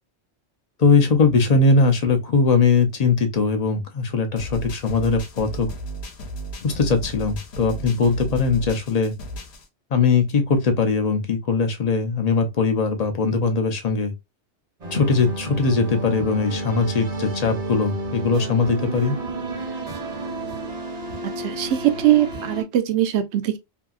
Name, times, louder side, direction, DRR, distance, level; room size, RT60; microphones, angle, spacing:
voice 1, 0.8-5.7 6.6-9.1 9.9-14.1 14.9-19.2, left 4 dB, 45° left, 0.5 m, -20 dB
sound 1, 4.4-9.7, right 2 dB, 70° left, 1.0 m, -34 dB
sound 2, 14.8-22.6, right 2 dB, 45° right, 0.7 m, -31 dB
voice 2, 21.4-23.6, right 12 dB, 75° right, 0.8 m, -21 dB
2.7 x 2.7 x 2.3 m
omnidirectional pair, 1.2 m